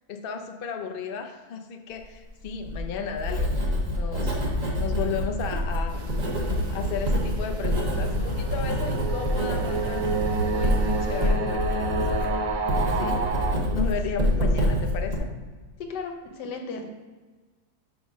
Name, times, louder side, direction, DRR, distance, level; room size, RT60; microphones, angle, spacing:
voice 1, 0.1-4.4 4.8-6.1 6.7-10.1 10.4-12.4 12.9-13.3 13.7-15.3, left 6 dB, 55° left, 5 dB, 0.6 m, -34 dB
Writing, 2.4-15.2, equal, 30° right, 1.2 m, -26 dB
sound 1, 5.9-11.3, right 1 dB, 80° right, 1.8 m, -41 dB
sound 2, 6.9-13.6, right 4 dB, 60° right, 1.1 m, -30 dB
voice 2, 15.8-16.9, left 4 dB, 80° left, 4 dB, 1.5 m, -35 dB
5.5 x 5.0 x 6.1 m, 1.4 s
omnidirectional pair, 1.8 m